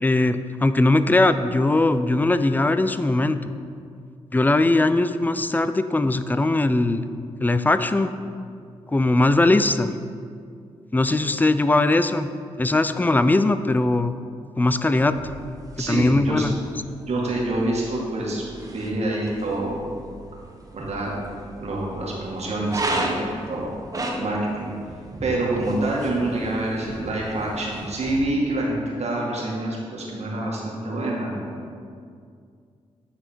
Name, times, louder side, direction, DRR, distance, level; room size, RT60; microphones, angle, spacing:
voice 1, 0.0-3.5 4.3-7.0 7.4-8.1 8.9-9.9 10.9-12.3 12.6-14.1 14.6-15.2 15.9-16.6, left 2 dB, 15° left, 11 dB, 0.4 m, -20 dB
sound 1, 15.0-28.1, right 1 dB, 25° right, 1.3 m, -35 dB
voice 2, 15.8-16.5 17.1-19.9 20.7-21.2 21.6-23.7 24.1-24.7 25.2-31.5, right 2 dB, 55° right, -3 dB, 1.9 m, -27 dB
9.3 x 4.2 x 4.5 m, 2.3 s
supercardioid pair, 45°, 13 cm